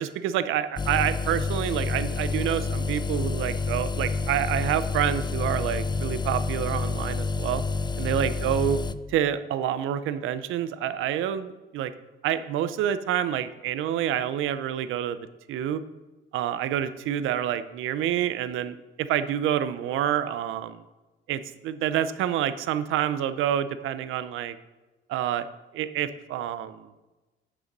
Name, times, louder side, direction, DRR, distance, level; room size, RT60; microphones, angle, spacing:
voice 1, 0.0-7.6 8.0-8.8 9.1-11.9 12.2-15.2 15.5-15.8 16.3-20.8 21.3-24.6 25.1-25.5 25.7-26.8, right 10 dB, 90° right, 13 dB, 0.6 m, -28 dB
sound 1, 0.8-8.9, left 4 dB, 20° left, 0.5 m, -28 dB
11.0 x 6.8 x 5.3 m, 1.1 s
cardioid pair, 90°, 20 cm